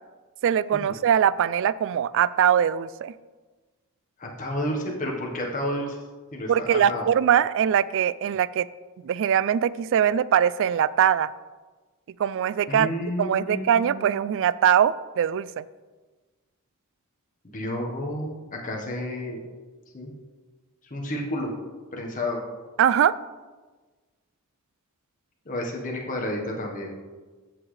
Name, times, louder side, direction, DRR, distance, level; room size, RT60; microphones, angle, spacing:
voice 1, 0.4-3.1 6.5-8.7 9.0-11.3 12.2-12.9 13.2-15.6 22.8-23.1, right 9 dB, 60° right, 18 dB, 0.3 m, -22 dB
voice 2, 4.2-6.0 6.3-7.1 12.7-14.3 17.4-19.4 19.9-20.1 20.9-21.5 21.9-22.4 25.4-26.9, left 1 dB, 35° left, -1 dB, 1.2 m, -31 dB
14.5 x 6.0 x 3.2 m, 1.3 s
head